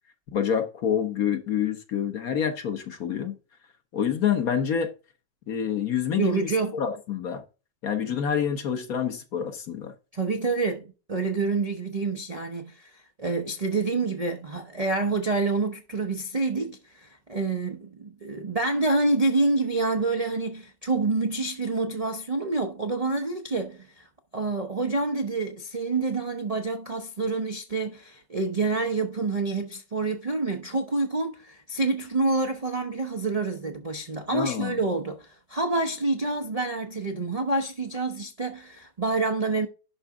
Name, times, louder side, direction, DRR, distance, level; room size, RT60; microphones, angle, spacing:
voice 1, 0.3-3.4 3.9-4.9 5.5-7.4 7.8-9.9 34.3-34.8, left 8 dB, 55° left, 1.4 m, -27 dB
voice 2, 6.2-6.8 10.1-12.9 13.2-24.0 24.3-39.7, right 3 dB, 45° right, 0.5 m, -27 dB
11.5 x 4.0 x 3.6 m
omnidirectional pair, 1.9 m